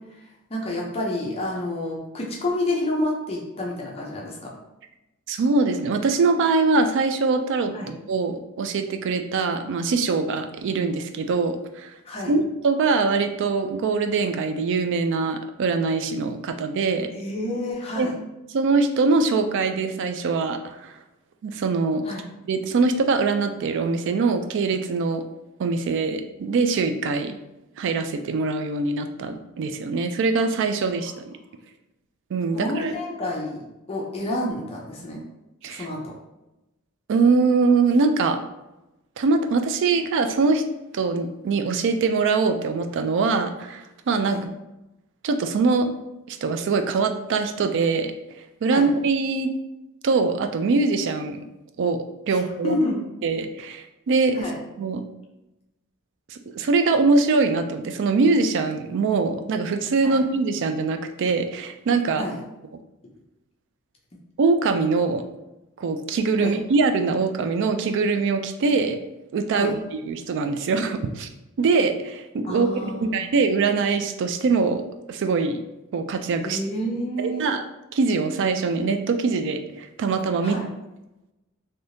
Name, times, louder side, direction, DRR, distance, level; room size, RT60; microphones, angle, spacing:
voice 1, 0.5-4.5 7.7-7.9 12.0-12.3 17.1-18.1 22.0-22.3 32.5-35.2 35.7-36.2 44.2-44.4 48.7-48.9 52.3-53.0 54.3-54.6 60.0-60.2 62.2-62.3 66.4-66.5 69.5-69.7 72.5-73.1 76.4-77.4 80.4-80.6, left 1 dB, 25° left, -2 dB, 0.6 m, -29 dB
voice 2, 5.3-11.9 12.3-17.1 18.0-18.1 18.5-20.9 21.4-22.0 22.5-25.2 25.6-27.4 27.8-31.3 32.3-32.9 35.6-35.9 37.1-38.4 39.2-40.6 40.9-44.4 45.2-45.9 46.3-48.1 48.6-49.5 50.0-51.5 51.8-52.0 52.3-52.8 53.2-54.5 54.8-55.0 56.3-62.2 64.4-65.2 65.8-69.0 69.3-69.7 70.0-71.3 71.6-74.8 75.1-75.6 75.9-76.6 77.2-77.6 77.9-80.6, right 4 dB, 55° right, 7 dB, 0.3 m, -23 dB
3.4 x 2.7 x 2.6 m, 0.96 s
head